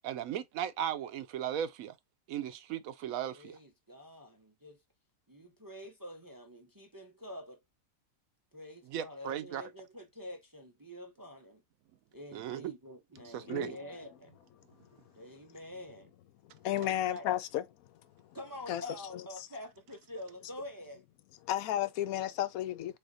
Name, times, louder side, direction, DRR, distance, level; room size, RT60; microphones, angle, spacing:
voice 1, 0.0-1.9 2.3-3.5 8.9-9.6 12.3-12.7 13.3-13.8, right 10 dB, 75° right, 1.0 m, -36 dB
voice 2, 3.3-4.8 5.3-7.6 8.5-11.6 12.1-14.3 15.1-16.1 16.7-17.3 18.3-21.0, left 1 dB, 30° right, 0.4 m, -47 dB
voice 3, 13.5-14.0 16.6-17.6 18.7-18.8 19.1-19.2 21.4-23.0, left 12 dB, 85° left, 1.1 m, -33 dB
3.6 x 3.5 x 3.9 m
omnidirectional pair, 1.5 m